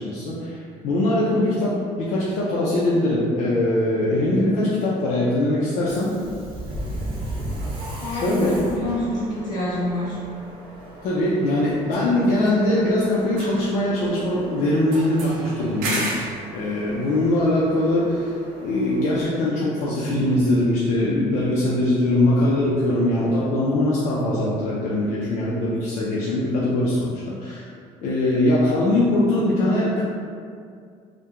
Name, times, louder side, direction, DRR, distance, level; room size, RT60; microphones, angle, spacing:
voice 1, 0.0-6.1 8.0-8.6 11.0-16.0 16.5-27.6 28.0-30.0, left 1 dB, 65° left, -6 dB, 0.4 m, -22 dB
Subway metro underground, 5.8-19.3, right 1 dB, 40° right, 0.5 m, -37 dB
voice 2, 8.0-10.2, left 1 dB, 30° left, -9 dB, 0.9 m, -27 dB
sound 1, 8.9-9.1 12.2-13.0 13.3-14.4 14.9-16.4, right 2 dB, 90° right, 0.5 m, -33 dB
2.3 x 2.1 x 2.9 m, 2.3 s
cardioid pair, 150°, 14 cm